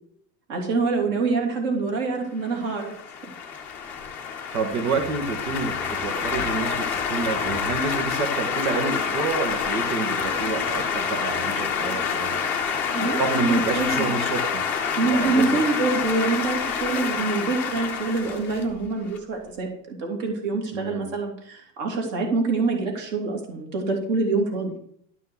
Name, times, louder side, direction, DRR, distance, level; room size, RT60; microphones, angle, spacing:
voice 1, 0.5-2.9 12.9-13.2 13.5-14.1 15.0-24.7, right 3 dB, 50° right, 2 dB, 3.2 m, -25 dB
sound 1, 2.5-19.2, left 6 dB, 5° left, 0.5 m, -27 dB
voice 2, 4.5-12.4 13.0-14.7 15.0-15.6 20.7-21.1, right 4 dB, 90° right, 4 dB, 2.3 m, -28 dB
12.5 x 6.1 x 6.3 m, 0.66 s
supercardioid pair, 175°, 50 cm